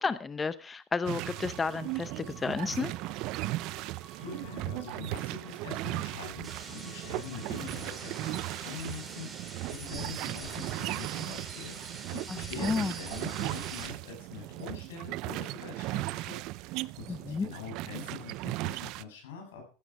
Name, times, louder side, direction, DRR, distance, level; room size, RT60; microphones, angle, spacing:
voice 1, 0.0-2.9 12.3-12.9 17.1-17.5, left 4 dB, 20° left, 15 dB, 0.6 m, -32 dB
sound 1, 1.1-19.0, right 19 dB, 60° right, 0.5 m, -37 dB
Bowed string instrument, 1.2-7.7, left 1 dB, 5° left, 4.3 m, -56 dB
voice 2, 3.9-19.7, left 6 dB, 90° left, 2 dB, 7.3 m, -44 dB
sound 2, 6.4-13.9, right 4 dB, 20° right, 4.8 m, -44 dB
14.5 x 10.0 x 4.7 m, 0.38 s
supercardioid pair, 110°, 0 cm